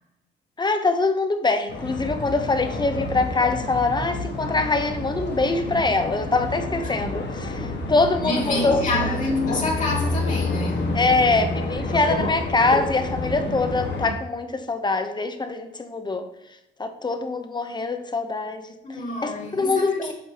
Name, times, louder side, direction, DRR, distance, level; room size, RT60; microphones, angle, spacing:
voice 1, 0.6-8.8 10.9-16.3 16.8-18.7 19.2-20.1, left 3 dB, 20° left, 0.9 m, -23 dB
sound 1, 1.7-14.1, left 2 dB, 60° left, 1.6 m, -29 dB
voice 2, 8.2-10.9 18.8-20.1, left 2 dB, 40° left, 2.1 m, -27 dB
8.5 x 5.3 x 2.9 m
cardioid pair, 90°, 20 cm